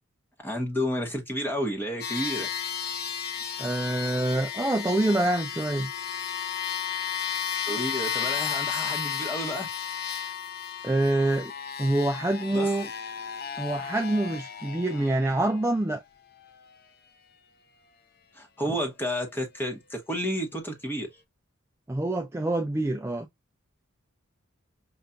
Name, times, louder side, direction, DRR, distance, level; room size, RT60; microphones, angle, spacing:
voice 1, 0.4-2.5 7.7-9.7 12.5-12.7 18.3-21.1, equal, 10° left, 1.0 m, -31 dB
sound 1, 2.0-15.6, left 8 dB, 50° left, 0.6 m, -33 dB
voice 2, 3.6-5.9 10.8-11.5 11.8-12.9 13.6-16.0 21.9-23.3, right 1 dB, 10° right, 0.4 m, -26 dB
5.6 x 2.4 x 2.4 m
head